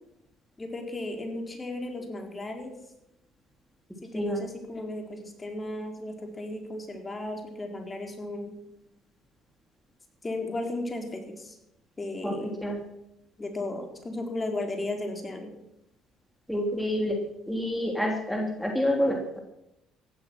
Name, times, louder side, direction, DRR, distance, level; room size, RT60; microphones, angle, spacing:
voice 1, 0.6-2.7 4.0-8.5 10.2-11.6 12.0-12.5 13.4-15.5, left 2 dB, 25° left, 3 dB, 4.1 m, -35 dB
voice 2, 4.1-4.4 12.2-12.8 16.5-19.4, equal, ahead, 1 dB, 3.2 m, -28 dB
15.5 x 12.0 x 6.2 m, 0.85 s
supercardioid pair, 70°, 0 cm